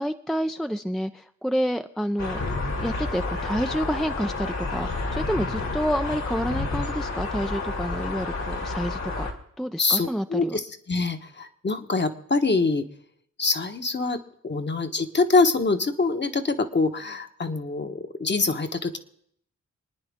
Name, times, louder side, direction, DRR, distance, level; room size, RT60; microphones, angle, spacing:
voice 1, 0.0-2.4 2.8-9.3 9.6-10.6, equal, ahead, 8 dB, 0.5 m, -29 dB
sound 1, 2.2-9.3, left 3 dB, 65° left, 2.5 m, -30 dB
voice 2, 9.8-12.9 13.4-19.0, left 3 dB, 35° left, 7 dB, 1.2 m, -25 dB
26.5 x 9.8 x 3.6 m, 0.69 s
cardioid pair, 65°, 29 cm